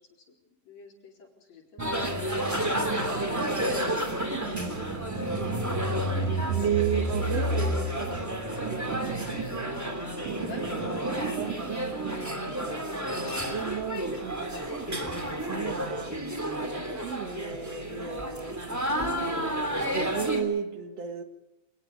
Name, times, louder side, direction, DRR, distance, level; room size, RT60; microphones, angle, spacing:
voice 1, 0.6-3.5 4.4-5.6 6.3-6.8 10.4-11.2 17.9-18.1, left 4 dB, 65° left, 1 dB, 5.5 m, -48 dB
sound 1, 1.8-20.4, right 1 dB, 5° right, 2.7 m, -31 dB
sound 2, 1.8-12.3, right 3 dB, 90° right, 3.3 m, -33 dB
voice 2, 6.5-9.5 10.7-12.7 13.1-16.1 16.6-18.6 19.1-21.2, right 7 dB, 60° right, 7 dB, 2.8 m, -35 dB
27.5 x 19.5 x 5.1 m, 1.0 s
omnidirectional pair, 3.3 m